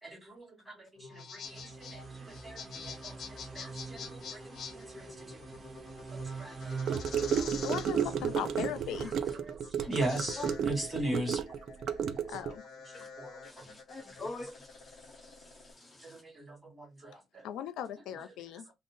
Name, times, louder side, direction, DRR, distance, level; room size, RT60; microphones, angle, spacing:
voice 1, 0.0-5.4 6.1-7.5 9.4-11.4 13.2-13.4 13.7-13.8 16.0-17.4, right 1 dB, 10° right, 2.2 m, -40 dB
sound 1, 1.0-15.7, left 6 dB, 65° left, 0.8 m, -48 dB
sound 2, 1.4-9.1, right 4 dB, 30° right, 1.1 m, -43 dB
Gurgling / Car passing by / Sink (filling or washing), 6.9-12.5, right 8 dB, 70° right, 0.4 m, -32 dB
voice 2, 7.6-9.1 12.3-12.6 17.4-18.7, left 10 dB, 90° left, 0.4 m, -38 dB
voice 3, 13.4-16.2, left 2 dB, 25° left, 0.7 m, -45 dB
3.7 x 2.0 x 3.6 m
cardioid pair, 90°, 0 cm